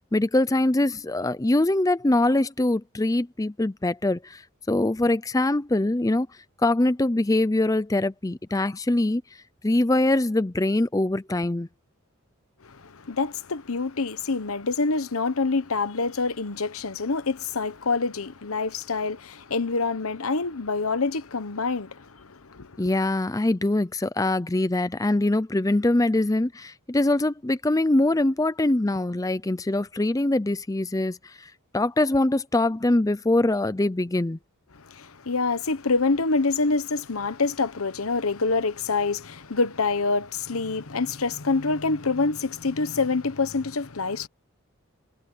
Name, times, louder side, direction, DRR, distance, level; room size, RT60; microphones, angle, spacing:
voice 1, 0.0-4.4 4.7-6.3 6.6-9.2 9.6-11.7 22.8-34.4, left 2 dB, 15° left, 0.5 m, -23 dB
voice 2, 12.6-22.8 34.7-44.3, left 3 dB, 90° left, 1.2 m, -26 dB
head